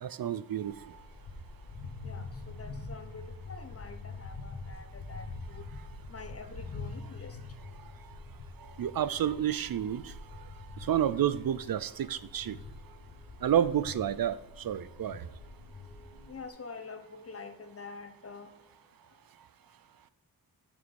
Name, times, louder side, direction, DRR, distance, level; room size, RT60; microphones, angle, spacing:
voice 1, 0.0-0.7 8.8-10.1 10.8-12.6 13.4-15.3, right 10 dB, 60° right, 15 dB, 0.5 m, -30 dB
sound 1, 0.6-16.5, left 3 dB, 90° left, 1.5 m, -45 dB
voice 2, 2.0-7.4 12.6-12.9 16.3-18.7, left 4 dB, 35° left, 7 dB, 1.1 m, -47 dB
9.5 x 6.2 x 4.2 m, 1.0 s
wide cardioid pair, 130°, 39 cm